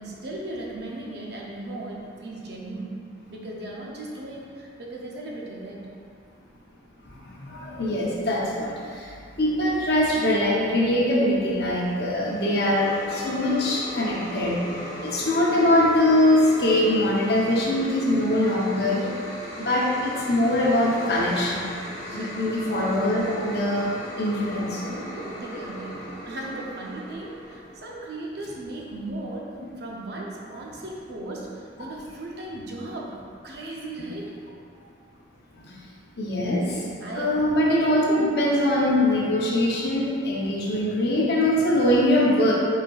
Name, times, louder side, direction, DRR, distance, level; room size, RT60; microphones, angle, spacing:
voice 1, 0.0-3.0 3.3-5.9 22.0-22.4 25.1-26.0 26.3-29.5 29.8-33.2 33.4-34.3 37.0-37.3, right 2 dB, 55° right, -2 dB, 0.6 m, -36 dB
voice 2, 7.4-8.7 9.4-14.6 15.0-19.0 19.7-21.6 22.1-23.9 24.2-25.0 36.2-36.6 37.2-42.5, left 1 dB, 55° left, -4 dB, 0.8 m, -22 dB
sound 1, 11.5-27.9, equal, 20° left, 0.8 m, -38 dB
5.1 x 4.2 x 2.4 m, 2.3 s
head